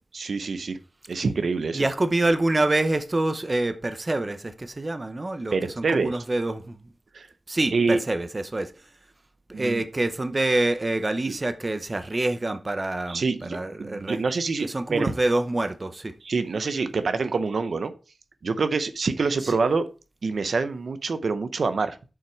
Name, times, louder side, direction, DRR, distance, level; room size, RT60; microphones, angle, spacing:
voice 1, 0.1-0.8 1.1-1.9 5.5-6.2 7.1-7.3 7.7-8.0 9.5-9.8 11.3-11.4 13.1-15.1 16.2-17.9 18.4-19.8 20.2-22.0, right 4 dB, 90° right, 0.8 m, -26 dB
voice 2, 1.7-6.8 7.5-8.7 9.5-14.2 14.6-16.1 19.4-19.6, right 2 dB, 35° right, 0.9 m, -26 dB
7.4 x 5.7 x 4.5 m
wide cardioid pair, 95°, 0 cm